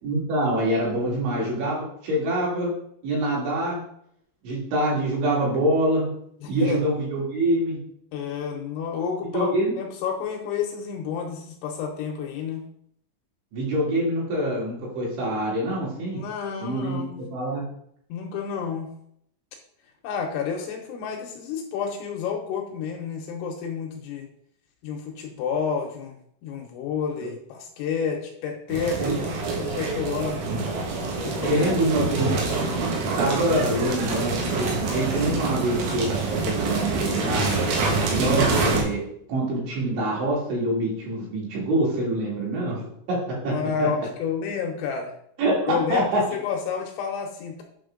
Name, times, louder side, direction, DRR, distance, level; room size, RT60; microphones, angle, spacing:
voice 1, 0.0-2.7 3.0-3.8 4.4-6.1 6.5-7.8 9.3-9.7 13.5-16.2 16.6-17.0 17.3-17.7 29.0-29.1 31.5-32.3 33.2-37.5 38.1-39.0 39.3-42.8 43.1-43.2 43.4-43.5 43.8-43.9 45.4-46.2, right 1 dB, 65° right, -5 dB, 4.8 m, -25 dB
voice 2, 6.4-6.8 8.1-12.7 16.1-17.2 18.1-18.9 20.0-24.3 24.8-30.4 31.2-31.6 32.0-32.2 43.5-45.2 45.7-47.6, left 6 dB, 75° left, 2 dB, 3.0 m, -30 dB
sound 1, 28.7-38.8, right 3 dB, 85° right, 4.6 m, -26 dB
9.7 x 6.0 x 3.8 m, 0.71 s
omnidirectional pair, 5.9 m